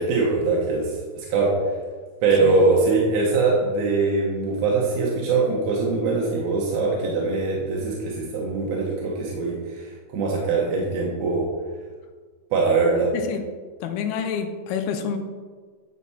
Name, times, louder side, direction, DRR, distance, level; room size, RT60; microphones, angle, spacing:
voice 1, 0.0-1.5 2.2-11.4 12.5-13.1, right 3 dB, 65° right, -3 dB, 2.2 m, -22 dB
voice 2, 13.1-13.4 13.8-15.2, left 7 dB, 80° left, 6 dB, 2.7 m, -28 dB
10.0 x 6.0 x 4.2 m, 1.5 s
omnidirectional pair, 4.4 m